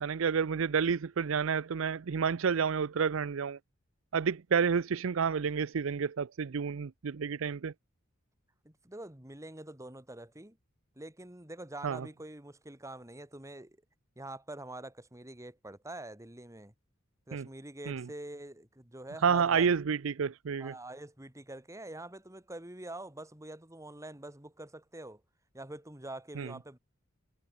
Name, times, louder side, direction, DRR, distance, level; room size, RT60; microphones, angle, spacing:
voice 1, 0.0-3.6 4.1-7.7 11.8-12.1 17.3-17.4 17.9-18.1 19.2-20.7 26.4-26.5, right 6 dB, 70° right, 0.5 m, -30 dB
voice 2, 8.6-10.6 11.0-13.8 14.2-16.7 17.3-19.7 20.6-25.2 25.5-26.8, right 1 dB, 15° right, 2.4 m, -45 dB
head